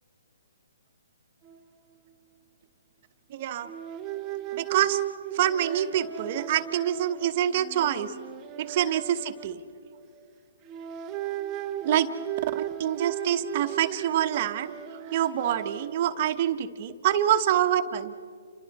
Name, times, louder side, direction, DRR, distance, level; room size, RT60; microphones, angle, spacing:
sound 1, 1.4-1.6 1.9-2.1 3.6-10.2 10.6-16.3, right 12 dB, 20° right, 0.9 m, -37 dB
voice 1, 3.3-3.7 4.5-5.0 5.3-8.1 8.6-9.6 11.8-12.1 12.5-18.1, right 11 dB, 40° right, 8 dB, 1.1 m, -26 dB
29.0 x 25.5 x 4.2 m, 2.3 s
hypercardioid pair, 150°, 0 cm